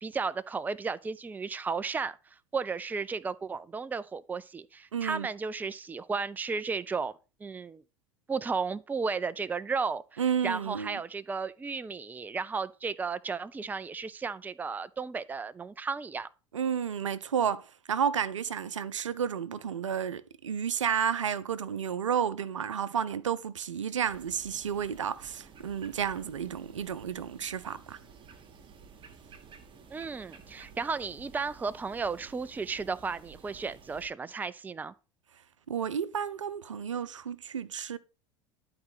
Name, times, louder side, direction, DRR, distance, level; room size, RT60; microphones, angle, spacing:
voice 1, 0.0-2.2 2.5-7.1 7.4-7.8 8.3-16.3 29.9-34.9, right 4 dB, 10° right, 0.5 m, -34 dB
voice 2, 4.9-5.3 10.2-11.0 16.5-28.0 35.7-38.0, right 8 dB, 75° right, 0.7 m, -31 dB
sound 1, 24.1-34.1, right 6 dB, 30° right, 1.9 m, -53 dB
11.5 x 4.3 x 5.7 m
figure-of-eight pair, 75°, 16 cm